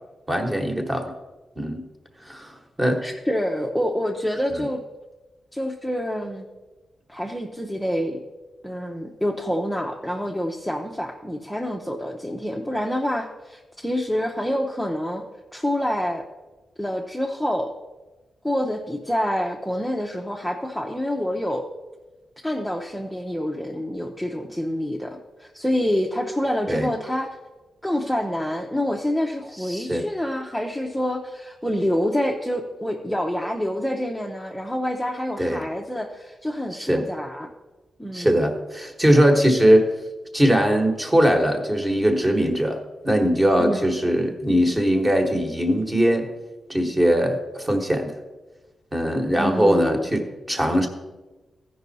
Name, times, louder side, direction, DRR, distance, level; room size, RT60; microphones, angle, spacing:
voice 1, 0.3-1.1 1.6-1.8 2.2-3.0 26.7-26.9 29.7-30.0 35.4-35.6 36.7-37.1 38.1-39.9 40.3-46.3 46.7-48.1 48.9-50.9, equal, 15° right, 4 dB, 1.3 m, -21 dB
voice 2, 3.0-4.8 5.5-6.5 7.1-8.2 8.6-15.2 15.5-16.3 16.8-17.7 18.4-21.6 22.4-27.4 27.8-37.5 38.0-38.4 43.6-43.9 49.4-50.1, equal, 5° left, -1 dB, 0.7 m, -27 dB
15.0 x 5.4 x 4.1 m, 1.2 s
wide cardioid pair, 120°, 0 cm